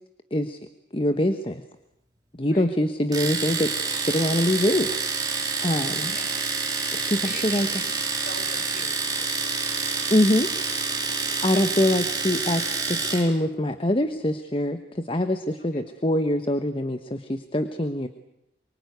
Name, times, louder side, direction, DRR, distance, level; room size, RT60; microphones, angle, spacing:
voice 1, 0.9-1.6 2.4-4.9 5.6-6.1 6.9-7.7 10.1-10.5 11.4-18.1, left 1 dB, 30° left, 9 dB, 1.2 m, -24 dB
Domestic sounds home sounds, 3.1-13.3, right 4 dB, 20° right, 4.3 m, -28 dB
voice 2, 6.0-6.4 7.2-7.9 8.2-9.8 11.4-11.7 15.7-15.8, left 2 dB, 50° left, 4 dB, 6.1 m, -43 dB
24.5 x 23.5 x 9.6 m, 0.81 s
head